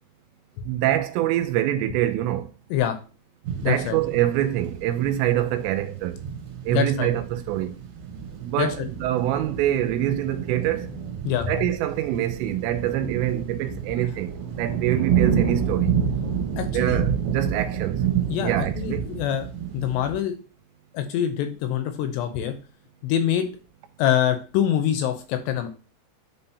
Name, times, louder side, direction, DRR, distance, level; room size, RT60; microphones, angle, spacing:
voice 1, 0.6-2.5 3.6-6.2 6.7-7.8 8.4-10.9 11.5-15.9 16.7-18.0 18.4-19.1, right 13 dB, 85° right, 2.8 m, -25 dB
sound 1, 3.4-20.1, right 8 dB, 65° right, 2.5 m, -29 dB
voice 2, 3.6-4.0 6.7-7.1 8.6-8.9 11.2-11.7 16.6-17.0 18.3-19.5 19.7-20.4 20.9-22.5 23.0-23.5 24.0-25.7, left 10 dB, 80° left, 2.7 m, -25 dB
9.9 x 3.9 x 2.8 m
omnidirectional pair, 5.2 m